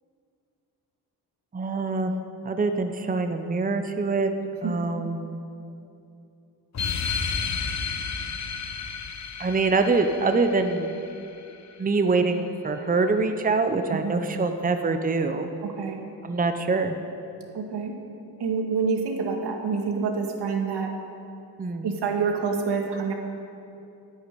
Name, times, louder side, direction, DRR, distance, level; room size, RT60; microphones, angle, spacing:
voice 1, 1.5-2.2 2.4-4.3 4.6-5.4 9.4-10.9 11.8-15.5 16.2-17.0 21.6-21.9, right 3 dB, 20° right, 7 dB, 0.8 m, -24 dB
Jingle all the way, 6.7-11.8, left 5 dB, 40° left, 1.0 m, -32 dB
voice 2, 17.5-17.9 18.4-20.9 21.8-23.1, right 5 dB, 80° right, 2 dB, 2.1 m, -27 dB
10.5 x 10.0 x 9.1 m, 2.7 s
cardioid pair, 90°, 40 cm